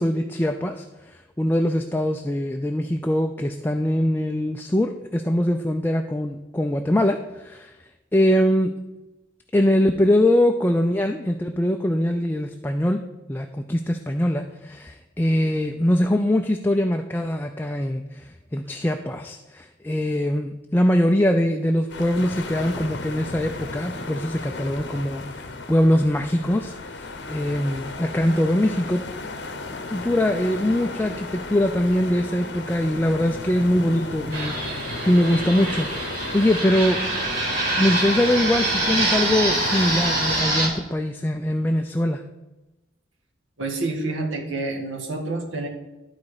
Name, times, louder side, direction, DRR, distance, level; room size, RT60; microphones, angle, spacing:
voice 1, 0.0-7.7 8.1-8.7 9.5-13.0 13.3-18.2 18.5-29.0 29.9-37.0 37.8-42.2, left 1 dB, 10° left, 4 dB, 0.3 m, -22 dB
sound 1, 21.9-40.4, left 3 dB, 60° left, 0.8 m, -35 dB
Fixed-wing aircraft airplane, 34.3-40.7, right 2 dB, 50° right, 3.1 m, -25 dB
voice 2, 43.6-45.7, right 2 dB, 90° right, 2 dB, 1.6 m, -28 dB
12.0 x 4.1 x 4.8 m, 1.0 s
head